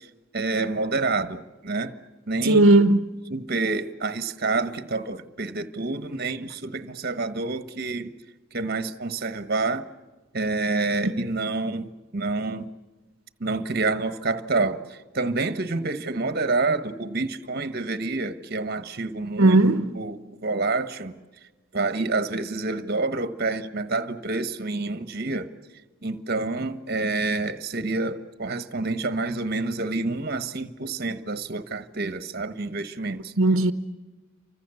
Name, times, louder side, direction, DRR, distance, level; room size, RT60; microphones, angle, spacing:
voice 1, 0.3-1.9 2.3-2.6 3.3-8.1 8.5-9.9 10.3-12.7 13.4-19.6 19.9-21.2 21.7-25.5 26.0-33.3, right 3 dB, 45° right, 1.3 m, -28 dB
voice 2, 2.4-3.1 11.0-11.1 19.4-19.9 33.4-33.7, right 2 dB, 75° right, 1.0 m, -17 dB
29.0 x 25.0 x 7.1 m
head